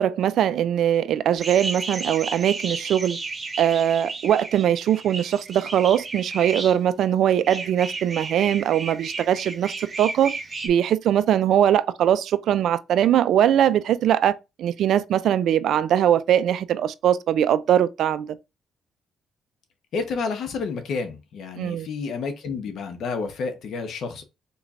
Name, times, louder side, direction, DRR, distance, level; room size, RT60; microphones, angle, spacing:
voice 1, 0.0-3.2 3.6-10.3 10.6-18.4 21.6-21.9, right 10 dB, 75° right, 0.3 m, -21 dB
sound 1, 1.4-6.8 7.4-10.7, right 3 dB, 25° right, 0.9 m, -33 dB
voice 2, 19.9-24.2, left 4 dB, 70° left, 1.0 m, -30 dB
4.2 x 3.2 x 2.5 m
cardioid pair, 90°, 0 cm